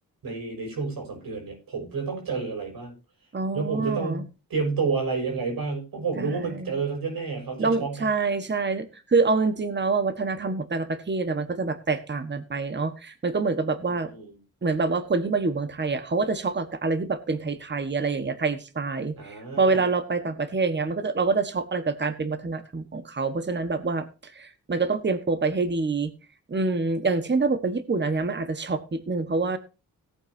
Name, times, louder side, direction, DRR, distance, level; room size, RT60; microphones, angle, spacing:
voice 1, 0.2-2.9 3.5-8.1 13.9-14.4 19.2-19.9, right 4 dB, 85° right, 2 dB, 6.8 m, -30 dB
voice 2, 3.3-4.2 6.2-6.7 7.6-14.1 14.6-26.1 26.5-29.6, right 4 dB, 30° right, 9 dB, 1.5 m, -26 dB
18.5 x 8.8 x 2.8 m, 0.31 s
cardioid pair, 85°, 34 cm